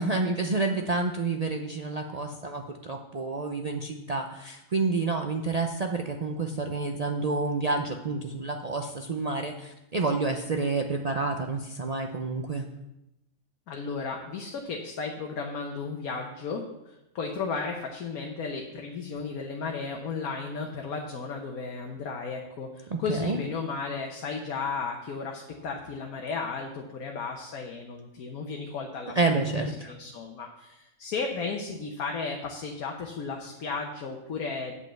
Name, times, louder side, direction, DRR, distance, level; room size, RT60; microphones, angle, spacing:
voice 1, 0.0-12.7 22.9-23.4 29.1-29.9, right 3 dB, 60° right, 3 dB, 0.4 m, -29 dB
voice 2, 13.7-29.2 29.9-34.7, left 4 dB, 85° left, 1 dB, 1.4 m, -34 dB
8.2 x 5.4 x 7.5 m, 0.92 s
omnidirectional pair, 1.5 m